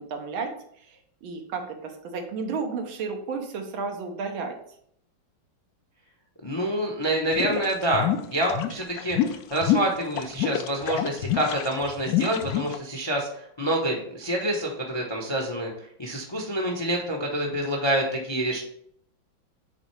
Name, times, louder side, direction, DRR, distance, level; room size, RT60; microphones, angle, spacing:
voice 1, 0.0-4.6, right 4 dB, 90° right, 4 dB, 1.8 m, -33 dB
voice 2, 6.4-18.6, right 1 dB, 30° left, 1 dB, 0.4 m, -27 dB
sound 1, 7.3-12.8, left 10 dB, 75° left, 0.9 m, -27 dB
8.7 x 3.7 x 3.2 m, 0.68 s
omnidirectional pair, 2.1 m